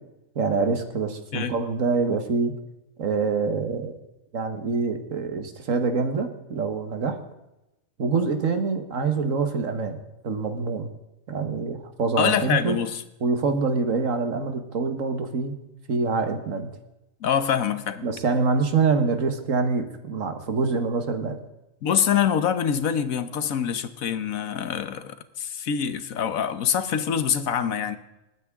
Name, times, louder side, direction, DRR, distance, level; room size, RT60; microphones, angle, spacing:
voice 1, 0.4-2.5 3.0-4.0 4.3-7.2 8.0-10.9 11.3-12.8 13.2-15.6 15.9-16.7 18.0-21.4, right 4 dB, 75° right, 8 dB, 1.7 m, -25 dB
voice 2, 12.2-13.0 17.2-18.0 21.8-28.0, left 8 dB, 85° left, 12 dB, 1.4 m, -25 dB
27.0 x 9.3 x 3.6 m, 0.96 s
omnidirectional pair, 1.4 m